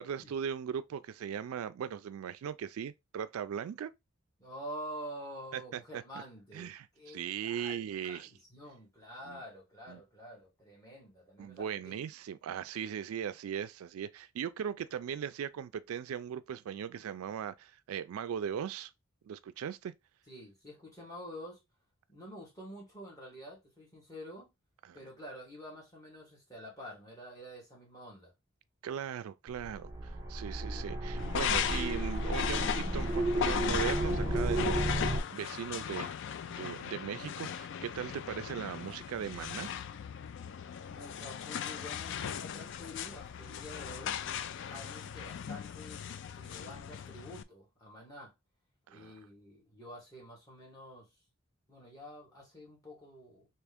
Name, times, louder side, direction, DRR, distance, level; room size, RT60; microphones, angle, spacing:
voice 1, 0.0-3.9 5.5-6.0 6.5-8.3 9.3-9.4 9.9-10.0 11.4-18.9 19.3-19.9 24.8-25.0 28.8-36.1 36.5-39.7 48.9-49.1, right 8 dB, 85° right, 0.3 m, -39 dB
voice 2, 4.4-12.0 20.3-21.6 22.1-24.5 24.9-28.3 40.9-44.2 44.7-48.3 48.9-51.1 51.7-53.5, equal, 15° left, 1.9 m, -48 dB
sound 1, 29.5-35.2, right 1 dB, 20° right, 1.1 m, -33 dB
sound 2, 31.2-47.4, left 8 dB, 60° left, 0.3 m, -38 dB
3.5 x 2.9 x 3.4 m
head